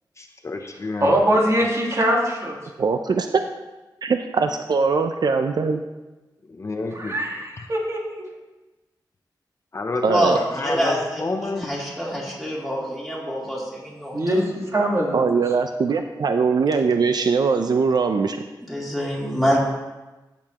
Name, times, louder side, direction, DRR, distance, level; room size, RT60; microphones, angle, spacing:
voice 1, 0.2-1.1 6.5-7.1 9.7-10.2 10.5-11.7, left 3 dB, 40° left, 4 dB, 0.6 m, -29 dB
voice 2, 1.0-2.6 6.9-8.0 14.1-15.2, right 1 dB, 40° right, -1 dB, 1.6 m, -22 dB
voice 3, 2.8-3.4 4.0-5.8 10.0-10.4 15.1-18.4, right 5 dB, 65° right, 6 dB, 0.5 m, -21 dB
voice 4, 10.1-14.1 18.7-19.6, equal, ahead, -6 dB, 2.9 m, -25 dB
14.0 x 6.8 x 3.0 m, 1.1 s
wide cardioid pair, 110°, 8 cm